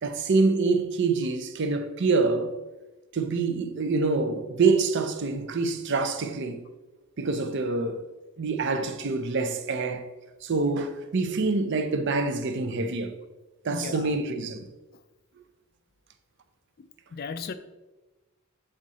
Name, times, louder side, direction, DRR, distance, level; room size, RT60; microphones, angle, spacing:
voice 1, 0.0-2.5 3.1-6.6 7.2-8.0 8.4-10.1 10.4-13.1 13.6-14.7, right 3 dB, 55° right, 0.6 m, -26 dB
voice 2, 13.7-14.1 17.1-17.5, left 5 dB, 45° left, 0.4 m, -34 dB
7.7 x 3.7 x 4.1 m
head